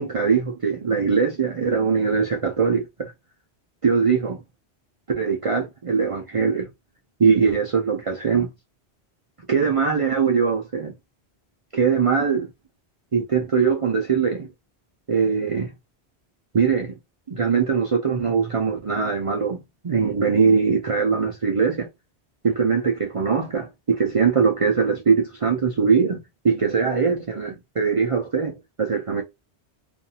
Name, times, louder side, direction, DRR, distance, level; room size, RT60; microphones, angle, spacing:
voice 1, 0.0-3.1 3.8-4.4 5.2-6.7 7.2-8.5 9.5-10.9 11.7-12.5 13.1-14.5 15.1-15.7 16.5-16.9 17.3-21.9 22.4-26.2 26.4-29.2, right 5 dB, 50° right, 0.4 m, -21 dB
2.5 x 2.4 x 2.7 m
omnidirectional pair, 1.2 m